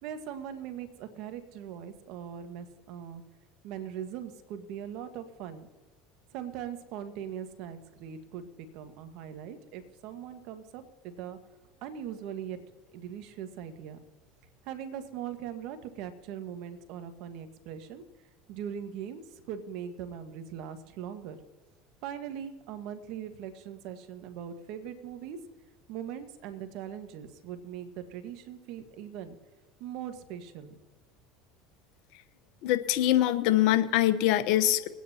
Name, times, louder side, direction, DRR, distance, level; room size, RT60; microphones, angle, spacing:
voice 1, 0.0-3.2 3.6-5.7 6.3-11.4 11.8-12.6 12.9-14.0 14.6-18.0 18.5-21.4 22.0-25.4 25.9-29.4 29.8-30.8, right 9 dB, 65° right, 8 dB, 1.4 m, -40 dB
voice 2, 32.6-34.9, left 13 dB, 65° left, 11 dB, 0.8 m, -24 dB
22.5 x 9.3 x 2.8 m, 1.3 s
supercardioid pair, 95°, 0 cm